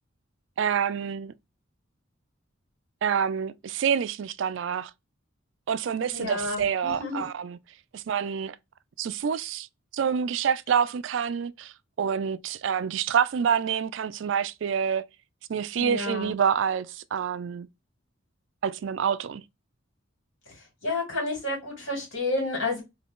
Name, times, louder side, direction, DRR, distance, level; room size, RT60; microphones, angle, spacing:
voice 1, 0.6-1.3 3.0-4.9 5.7-7.6 7.9-8.6 9.0-9.7 9.9-15.0 15.5-17.7 18.6-19.4, right 7 dB, 65° right, 0.4 m, -27 dB
voice 2, 6.1-7.3 15.8-16.3 20.8-22.8, left 2 dB, 75° left, 2.6 m, -30 dB
3.7 x 2.8 x 3.5 m
head